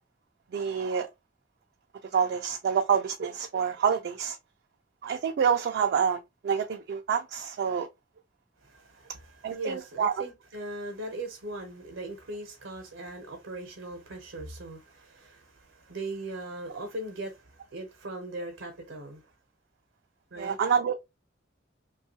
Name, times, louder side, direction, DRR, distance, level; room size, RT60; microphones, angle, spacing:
voice 1, 0.5-1.1 2.1-4.4 5.0-7.9 9.4-10.1 20.4-20.9, right 7 dB, 55° right, 0.3 m, -27 dB
voice 2, 8.6-19.2 20.3-20.6, right 2 dB, 80° right, 0.7 m, -39 dB
2.9 x 2.3 x 2.6 m
head